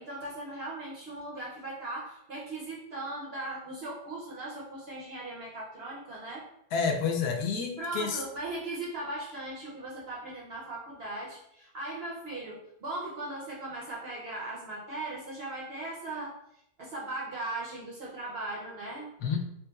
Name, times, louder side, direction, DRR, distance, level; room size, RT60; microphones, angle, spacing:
voice 1, 0.0-6.5 7.8-19.1, right 2 dB, 60° right, -5 dB, 0.7 m, -38 dB
voice 2, 6.7-8.2 19.2-19.4, left 5 dB, 90° left, 3 dB, 1.1 m, -29 dB
3.1 x 3.1 x 2.3 m, 0.76 s
omnidirectional pair, 1.6 m